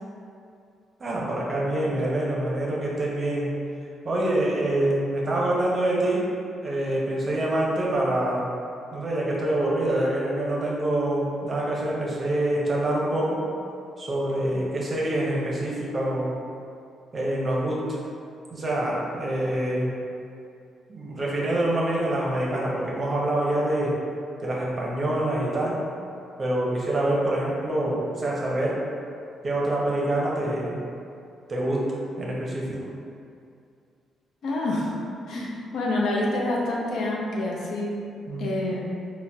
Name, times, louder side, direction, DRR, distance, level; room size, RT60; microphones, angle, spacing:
voice 1, 1.0-3.6 4.0-6.2 6.6-8.5 8.9-13.4 14.0-16.3 17.1-18.0 18.5-19.9 20.9-24.0 24.4-25.8 26.4-28.8 29.4-30.8 31.5-32.9 38.3-38.8, right 1 dB, 35° right, -4 dB, 0.6 m, -26 dB
voice 2, 34.4-34.9 35.3-37.9 38.4-38.8, left 2 dB, 70° left, -3 dB, 0.5 m, -27 dB
3.8 x 2.1 x 2.2 m, 2.5 s
cardioid pair, 90°, 0 cm